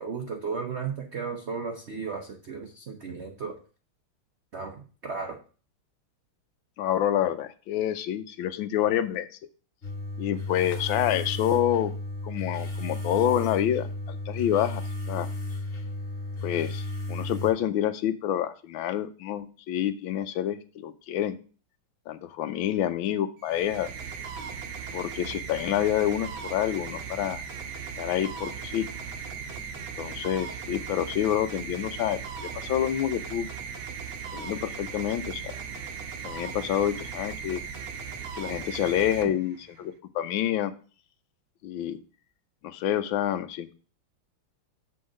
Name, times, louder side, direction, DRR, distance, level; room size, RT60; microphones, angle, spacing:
voice 1, 0.0-3.6 4.5-5.4, right 5 dB, 55° right, 3 dB, 0.7 m, -35 dB
voice 2, 6.8-9.3 10.2-11.9 12.2-14.8 15.1-15.3 16.4-21.4 22.1-23.9 24.9-27.4 28.0-28.9 30.0-33.5 34.3-35.5 36.2-37.6 38.4-40.7 41.6-42.0 42.6-43.7, left 11 dB, 75° left, 12 dB, 1.3 m, -28 dB
sound 1, 9.8-17.5, left 2 dB, 30° left, 1.6 m, -34 dB
sound 2, 23.4-39.9, right 6 dB, 75° right, 1.7 m, -38 dB
6.9 x 3.8 x 6.4 m, 0.38 s
omnidirectional pair, 2.3 m